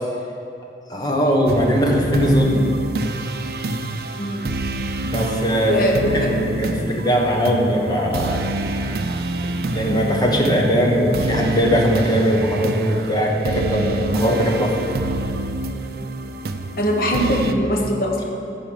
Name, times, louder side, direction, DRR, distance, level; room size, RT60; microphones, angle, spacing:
voice 1, 0.9-2.7 5.0-5.8 6.1-8.5 9.7-14.7, equal, 25° left, -1 dB, 1.2 m, -20 dB
sound 1, 1.5-17.5, right 2 dB, 60° right, 0.5 m, -26 dB
voice 2, 5.7-6.3 9.9-10.1 16.8-18.3, equal, 55° left, 0 dB, 1.2 m, -21 dB
11.5 x 5.0 x 7.5 m, 2.8 s
head